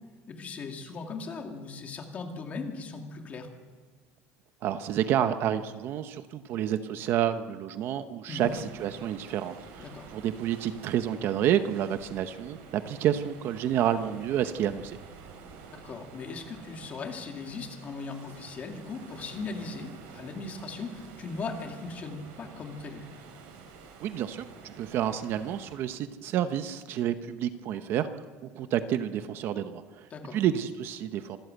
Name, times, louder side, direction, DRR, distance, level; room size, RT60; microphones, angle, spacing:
voice 1, 0.3-3.5 8.3-8.5 9.8-10.1 15.7-23.1 30.1-30.4, left 4 dB, 25° left, 3 dB, 2.3 m, -38 dB
voice 2, 4.6-15.0 24.0-28.1 28.4-30.1 30.3-31.4, right 10 dB, 40° right, 10 dB, 0.8 m, -29 dB
sound 1, 8.3-25.8, right 5 dB, 90° right, 5.6 m, -49 dB
26.0 x 13.5 x 7.9 m, 1.4 s
cardioid pair, 175°, 6 cm